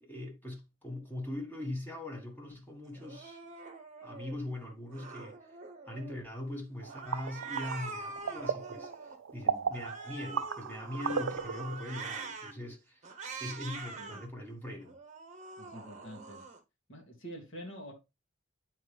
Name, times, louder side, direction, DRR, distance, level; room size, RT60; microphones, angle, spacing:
voice 1, 0.0-3.4 4.0-5.4 5.9-8.9 9.3-13.1 13.4-14.9, left 1 dB, 10° left, 1.6 m, -41 dB
Cat, 3.0-4.4 4.9-6.3 6.9-9.2 9.7-12.5 13.0-14.3 14.8-16.6, right 4 dB, 35° right, 1.0 m, -44 dB
sound 1, 6.8-11.8, right 6 dB, 80° right, 0.5 m, -36 dB
voice 2, 9.4-9.8 14.0-14.2 15.6-16.4 16.9-17.9, equal, 70° left, 2.3 m, -47 dB
9.3 x 4.4 x 3.3 m
head